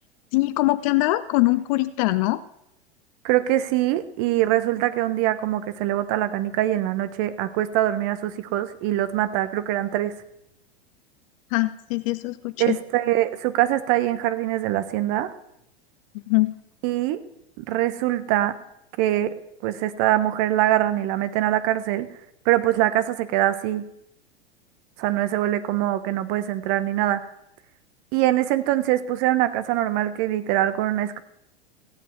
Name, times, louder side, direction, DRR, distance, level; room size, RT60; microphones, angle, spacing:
voice 1, 0.3-2.4 11.5-12.8 16.3-16.5, left 19 dB, 35° left, 14 dB, 0.4 m, -22 dB
voice 2, 3.2-10.1 12.6-15.3 16.8-17.2 17.6-18.5 19.0-19.4 19.6-22.1 22.5-23.8 25.0-27.2 28.1-31.2, right 14 dB, 40° right, 12 dB, 0.9 m, -23 dB
16.0 x 9.1 x 4.4 m, 0.81 s
figure-of-eight pair, 90°, 32 cm